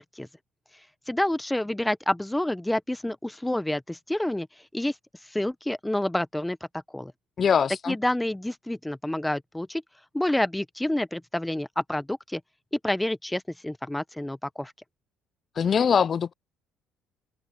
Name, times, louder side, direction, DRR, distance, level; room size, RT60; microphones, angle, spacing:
voice 1, 1.1-4.5 4.7-4.9 5.3-6.6 6.9-7.1 7.9-9.8 10.1-12.4 12.7-14.7, left 1 dB, 5° left, 0.9 m, -28 dB
voice 2, 7.4-8.0 15.6-16.3, left 7 dB, 45° left, 0.4 m, -22 dB
open air
supercardioid pair, 85°, 0 cm